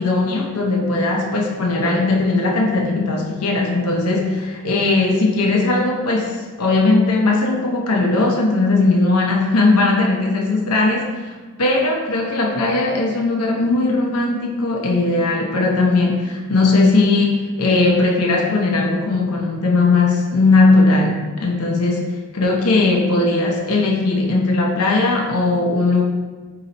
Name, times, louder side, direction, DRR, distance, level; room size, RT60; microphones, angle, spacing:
voice 1, 0.0-26.0, left 3 dB, 90° left, 0 dB, 0.6 m, -18 dB
3.8 x 2.9 x 4.0 m, 1.3 s
head